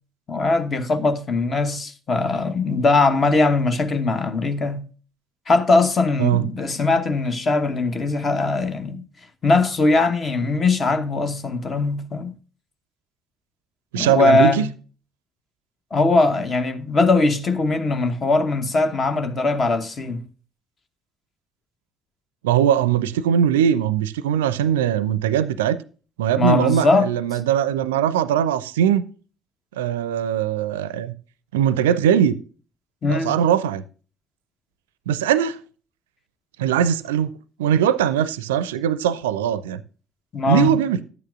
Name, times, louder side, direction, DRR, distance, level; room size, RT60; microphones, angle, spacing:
voice 1, 0.3-4.9 5.5-9.1 9.4-12.3 13.9-14.7 15.9-20.2 26.4-27.1 33.0-33.4 40.3-40.8, left 3 dB, 35° left, 1.0 m, -20 dB
voice 2, 13.9-14.6 22.4-25.8 26.2-29.1 29.8-31.1 31.5-32.3 33.1-33.8 35.1-35.6 36.6-37.3 37.6-39.8 40.5-41.0, right 9 dB, 70° right, 0.4 m, -20 dB
10.5 x 8.9 x 2.4 m
figure-of-eight pair, 50°, 0 cm